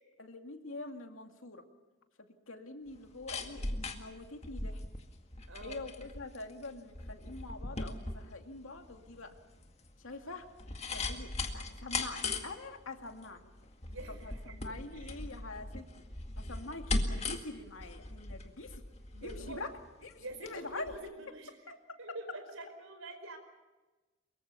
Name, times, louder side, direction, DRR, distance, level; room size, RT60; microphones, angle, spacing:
voice 1, 0.2-1.6 2.5-4.8 5.6-9.3 10.0-10.5 10.9-13.5 14.1-15.9 16.4-18.8 19.2-19.7 20.0-20.9 21.7-21.8, left 2 dB, 85° left, 5 dB, 2.4 m, -45 dB
sound 1, 2.9-20.6 20.9-21.0, left 2 dB, 35° left, 2.0 m, -39 dB
voice 2, 5.5-5.8 13.9-14.6 14.9-15.2 16.5-16.7 19.1-19.6 20.2-21.5 22.0-23.4, right 2 dB, 90° right, 7 dB, 5.1 m, -46 dB
24.0 x 22.5 x 7.0 m, 1.2 s
head